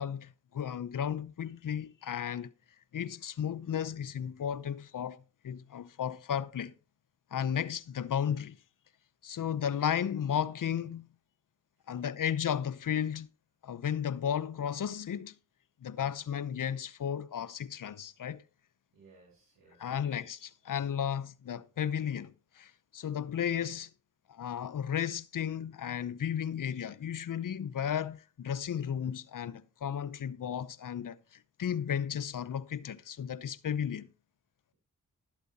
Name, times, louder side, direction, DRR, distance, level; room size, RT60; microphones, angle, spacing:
voice 1, 0.0-2.5 2.9-6.7 7.3-8.6 9.2-11.1 11.9-13.3 13.6-15.3 15.8-18.4 19.8-23.9 24.3-34.1, left 8 dB, 70° left, 0.8 m, -34 dB
voice 2, 16.0-16.4 18.9-20.2, right 3 dB, 90° right, 5.2 m, -62 dB
12.5 x 8.1 x 4.1 m
cardioid pair, 45°, 34 cm